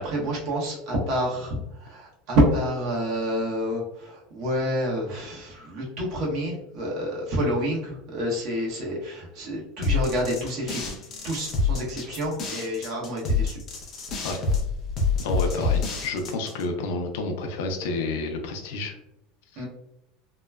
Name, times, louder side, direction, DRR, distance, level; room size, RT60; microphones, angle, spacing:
voice 1, 0.0-11.0 11.2-13.6 15.4-15.8 19.6-19.7, equal, 50° right, -4 dB, 1.1 m, -28 dB
sound 1, 9.8-16.6, left 4 dB, 35° left, 0.6 m, -27 dB
voice 2, 15.2-18.9, left 3 dB, 80° left, 5 dB, 0.5 m, -30 dB
2.9 x 2.2 x 2.2 m, 0.85 s
cardioid pair, 160°, 0 cm